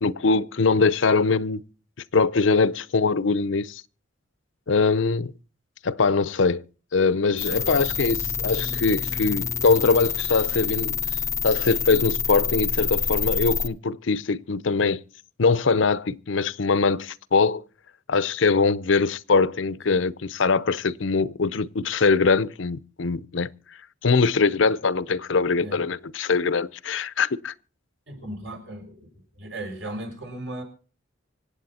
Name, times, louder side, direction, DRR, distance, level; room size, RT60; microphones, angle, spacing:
voice 1, 0.0-1.6 2.1-3.8 4.7-5.3 5.8-6.6 6.9-11.0 11.4-15.0 15.4-17.6 18.1-23.5 24.0-27.5, left 4 dB, 70° left, 0.7 m, -22 dB
sound 1, 7.4-13.7, left 6 dB, 15° left, 0.6 m, -27 dB
voice 2, 7.4-7.8 19.9-20.0 25.6-25.8 28.1-29.1 29.4-30.6, right 1 dB, 65° right, 5.9 m, -36 dB
25.5 x 8.6 x 4.2 m
head